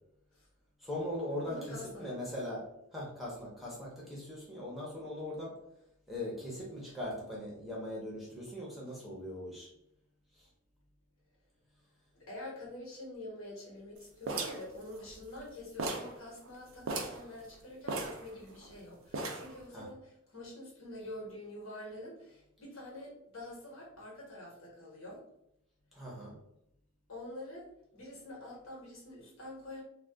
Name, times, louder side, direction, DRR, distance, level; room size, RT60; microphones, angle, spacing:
voice 1, 0.8-2.6 2.9-5.6 6.1-9.7 10.4-10.5 19.7-19.9 25.9-26.4, left 1 dB, ahead, -5 dB, 0.8 m, -40 dB
voice 2, 1.5-2.1 12.2-25.2 27.1-27.7 27.9-29.8, left 1 dB, 85° left, -3 dB, 1.2 m, -46 dB
sound 1, 14.3-15.5 15.8-16.2 16.5-16.6 16.8-17.2 17.9-18.7 19.1-19.6, right 3 dB, 80° right, 0.5 m, -37 dB
2.4 x 2.2 x 3.4 m, 0.76 s
head